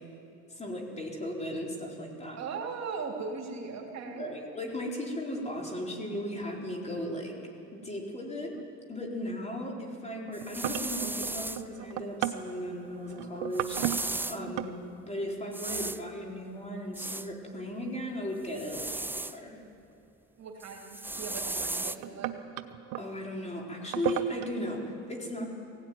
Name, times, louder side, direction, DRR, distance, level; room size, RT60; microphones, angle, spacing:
voice 1, 0.5-2.4 4.1-7.4 7.7-8.6 8.9-14.7 15.1-19.6 23.0-25.4, equal, 20° left, -1 dB, 4.3 m, -36 dB
voice 2, 2.4-4.3 20.4-22.3, right 5 dB, 55° right, 0 dB, 3.5 m, -38 dB
sound 1, 6.4-6.5 8.5-9.0 9.3-9.6 10.1-14.8 15.8-16.4 18.4-18.5 20.7-20.8 21.6-23.1 23.8-24.5, right 13 dB, 85° right, 1.0 m, -36 dB
sound 2, 10.3-11.6 13.5-14.4 15.5-16.0 16.9-17.3 18.5-19.4 20.6-22.0, right 2 dB, 5° right, 0.5 m, -35 dB
18.0 x 17.0 x 9.5 m, 2.8 s
cardioid pair, 100°, 33 cm